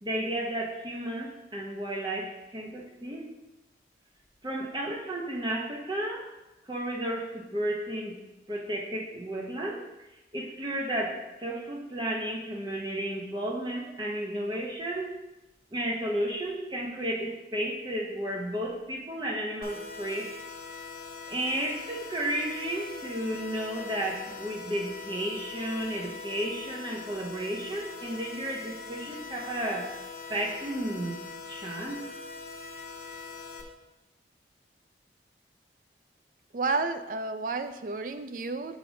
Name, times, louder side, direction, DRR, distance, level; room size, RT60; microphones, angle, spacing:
voice 1, 0.0-3.3 4.4-6.3 6.7-8.2 8.5-9.8 10.3-15.2 15.7-20.3 21.3-29.9 30.3-31.2 31.5-32.1, right 1 dB, 25° right, -1 dB, 0.9 m, -33 dB
sound 1, 19.6-33.6, left 4 dB, 55° left, 0.8 m, -42 dB
voice 2, 36.5-38.8, right 3 dB, 45° right, 9 dB, 0.4 m, -31 dB
6.7 x 5.1 x 3.8 m, 0.99 s
head